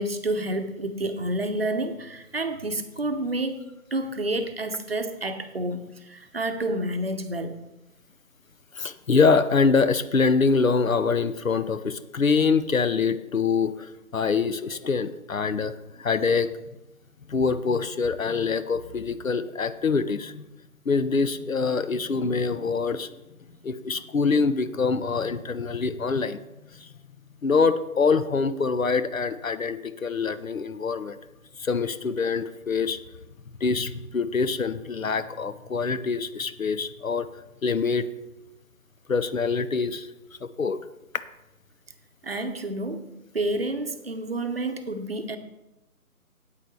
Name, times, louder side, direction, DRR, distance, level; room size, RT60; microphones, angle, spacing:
voice 1, 0.0-3.6 3.9-7.6 42.2-43.1 43.3-45.4, right 1 dB, 40° right, 8 dB, 0.9 m, -29 dB
voice 2, 8.7-16.5 17.3-20.4 20.9-23.1 23.6-26.4 26.7-26.9 27.4-31.2 31.6-33.0 33.6-37.3 37.6-38.1 39.1-40.1 40.4-40.8, left 4 dB, 65° left, 13 dB, 0.8 m, -25 dB
8.8 x 8.6 x 4.7 m, 0.94 s
figure-of-eight pair, 155°, 45 cm